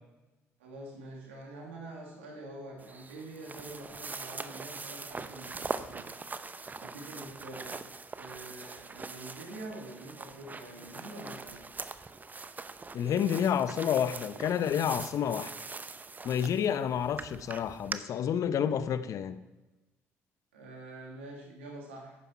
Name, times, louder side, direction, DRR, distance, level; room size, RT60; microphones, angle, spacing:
voice 1, 0.6-6.1 6.8-7.7 8.2-11.6 20.5-22.2, right 2 dB, 90° right, -2 dB, 2.8 m, -45 dB
sound 1, 2.8-18.0, right 4 dB, 25° right, 0.8 m, -42 dB
voice 2, 12.9-15.5 16.2-19.4, left 8 dB, 60° left, 13 dB, 0.8 m, -29 dB
10.5 x 9.2 x 4.7 m, 1.1 s
hypercardioid pair, 55°, 6 cm